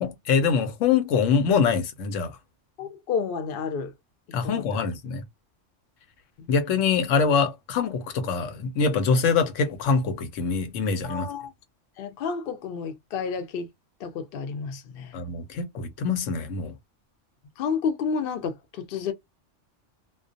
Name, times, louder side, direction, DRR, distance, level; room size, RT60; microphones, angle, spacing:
voice 1, 0.0-2.3 4.3-5.2 6.5-11.3 15.1-16.7, left 5 dB, 85° left, 1.0 m, -24 dB
voice 2, 2.8-3.9 4.4-4.8 11.0-11.5 12.0-13.7 14.0-15.1 17.6-19.1, left 6 dB, 60° left, 0.7 m, -30 dB
2.3 x 2.2 x 2.5 m
omnidirectional pair, 1.3 m